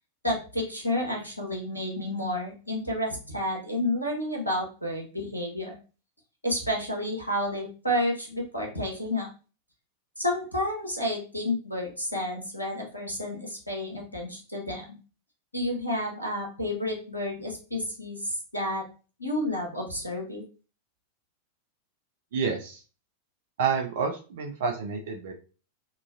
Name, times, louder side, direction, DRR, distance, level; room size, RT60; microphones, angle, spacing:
voice 1, 0.2-5.8 6.4-9.3 10.2-14.9 15.5-18.8 19.2-20.4, left 1 dB, 85° left, 0 dB, 0.9 m, -30 dB
voice 2, 22.3-22.8 23.6-25.3, right 5 dB, 55° right, 3 dB, 0.4 m, -29 dB
2.9 x 2.4 x 2.5 m, 0.35 s
figure-of-eight pair, 90°, 0 cm